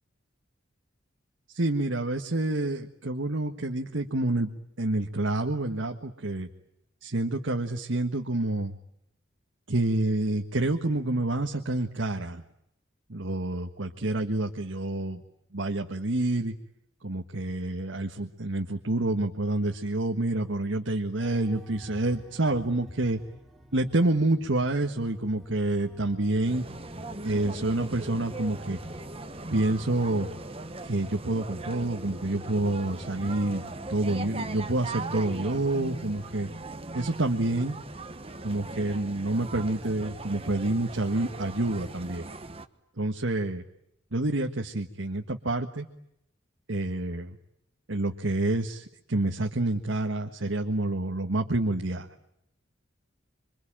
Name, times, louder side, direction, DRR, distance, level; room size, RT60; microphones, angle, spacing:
voice 1, 1.5-6.5 7.0-8.8 9.7-12.4 13.1-15.2 15.5-16.5 17.0-23.2 23.7-26.7 27.2-28.8 29.5-30.3 30.8-36.5 36.9-37.8 38.4-42.3 43.0-43.6 44.1-45.9 46.7-47.4 47.9-52.1, right 2 dB, 80° right, 3 dB, 1.6 m, -28 dB
sound 1, 21.2-36.3, left 1 dB, ahead, 2.8 m, -49 dB
sound 2, 26.4-42.7, right 2 dB, 30° right, 1.3 m, -39 dB
27.0 x 25.0 x 8.9 m, 0.79 s
head